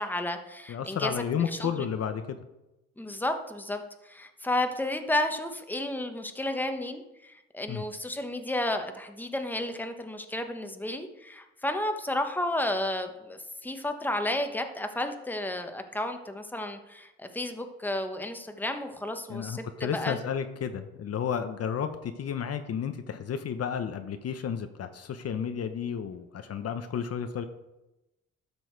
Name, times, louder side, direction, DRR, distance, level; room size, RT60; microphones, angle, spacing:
voice 1, 0.0-1.9 3.0-20.2, left 1 dB, 5° left, 6 dB, 1.1 m, -32 dB
voice 2, 0.7-2.4 7.7-7.8 19.3-27.4, left 7 dB, 55° left, 9 dB, 0.8 m, -32 dB
12.5 x 6.3 x 4.6 m, 0.96 s
cardioid pair, 90°, 30 cm